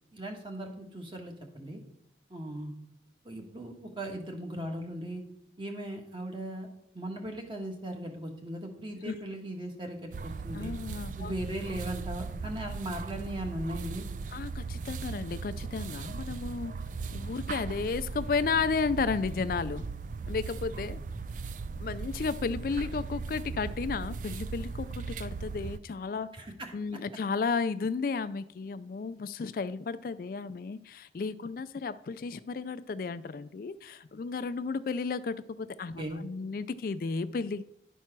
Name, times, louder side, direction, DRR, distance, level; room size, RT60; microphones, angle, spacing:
voice 1, 0.1-1.8 2.3-2.7 3.2-5.2 5.6-6.7 6.9-10.1 10.4-10.7 11.2-14.0 26.3-26.7 36.0-36.2, right 1 dB, 30° right, 3 dB, 1.4 m, -38 dB
sound 1, 10.1-25.8, right 4 dB, 45° right, 0.3 m, -38 dB
voice 2, 10.5-11.3 14.3-16.7 17.1-19.8 20.3-21.0 21.8-26.3 26.7-37.6, left 4 dB, 50° left, 13 dB, 0.3 m, -33 dB
11.0 x 4.5 x 5.9 m, 0.74 s
head